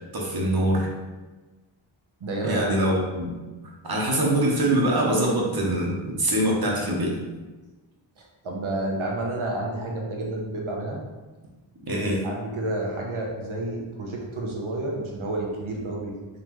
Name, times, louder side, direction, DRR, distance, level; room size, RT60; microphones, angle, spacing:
voice 1, 0.1-0.9 2.4-3.3 3.8-7.1 11.9-12.2, right 1 dB, 50° right, -2 dB, 1.1 m, -23 dB
voice 2, 2.2-2.8 8.2-11.0 12.2-16.1, right 2 dB, 75° right, -1 dB, 1.0 m, -30 dB
3.9 x 3.2 x 3.1 m, 1.2 s
cardioid pair, 45°, 49 cm